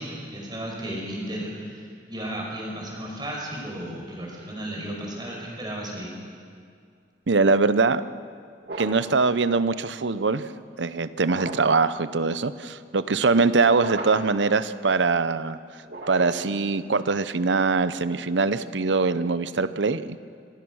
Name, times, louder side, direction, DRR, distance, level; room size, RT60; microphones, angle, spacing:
voice 1, 0.0-6.1, right 1 dB, 25° right, -2 dB, 5.4 m, -34 dB
voice 2, 7.3-8.0 8.8-10.5 10.8-15.6 16.1-20.2, right 4 dB, 80° right, 13 dB, 0.8 m, -22 dB
sound 1, 8.6-9.2 11.2-11.8 13.7-14.4 15.8-16.6, right 2 dB, 65° right, 3.0 m, -36 dB
26.5 x 18.0 x 6.4 m, 2.2 s
head